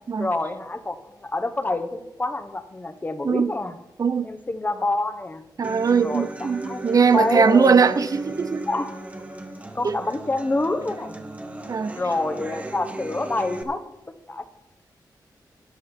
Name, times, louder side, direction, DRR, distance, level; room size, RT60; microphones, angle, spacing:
voice 1, 0.2-3.8 4.2-5.4 6.0-8.0 8.7-9.0 9.7-11.2 12.0-13.8 14.3-14.4, left 2 dB, 25° left, 1.1 m, -27 dB
Human voice / Acoustic guitar, 5.6-13.6, right 2 dB, 15° right, 1.1 m, -37 dB
voice 2, 5.6-8.7 9.8-10.0 11.7-11.9, right 5 dB, 50° right, 0.6 m, -20 dB
13.0 x 10.0 x 4.5 m
wide cardioid pair, 100°, 8 cm